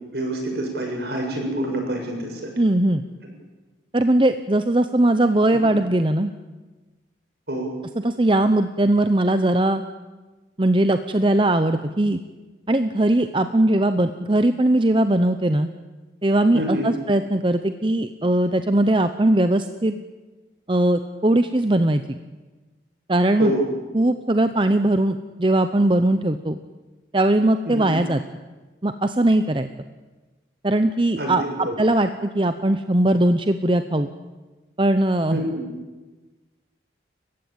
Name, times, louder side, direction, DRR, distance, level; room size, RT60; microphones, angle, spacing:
voice 1, 0.1-2.4 5.5-5.6 7.5-7.7 16.5-16.9 23.4-23.6 27.7-28.0 31.2-31.7 35.3-35.6, right 1 dB, 60° right, 1 dB, 7.2 m, -26 dB
voice 2, 2.6-3.0 3.9-6.3 8.0-9.8 10.6-12.2 12.7-15.7 16.2-19.9 20.7-22.2 23.1-23.5 23.9-26.6 27.1-28.2 28.8-29.7 30.6-34.1 34.8-35.4, right 1 dB, 25° right, 9 dB, 0.8 m, -20 dB
30.0 x 15.5 x 8.9 m, 1.2 s
head